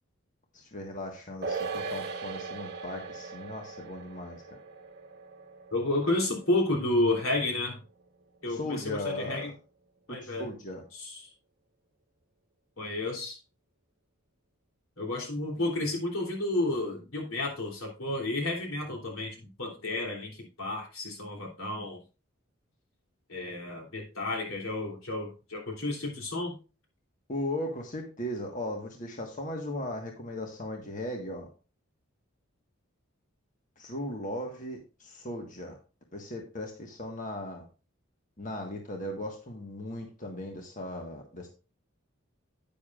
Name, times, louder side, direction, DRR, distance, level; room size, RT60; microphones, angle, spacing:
voice 1, 0.5-4.6 8.5-9.5 10.1-10.8 27.3-31.5 33.8-35.8 36.1-37.6 38.4-41.5, left 1 dB, 40° left, 2 dB, 1.5 m, -37 dB
sound 1, 1.4-8.1 8.4-8.5, right 4 dB, 50° right, 1.1 m, -40 dB
voice 2, 5.7-7.8 8.4-9.5 10.1-10.5 10.9-11.2 12.8-13.4 15.0-22.0 23.3-26.5, left 2 dB, 85° left, 0 dB, 3.2 m, -31 dB
10.0 x 9.5 x 2.5 m, 0.33 s
head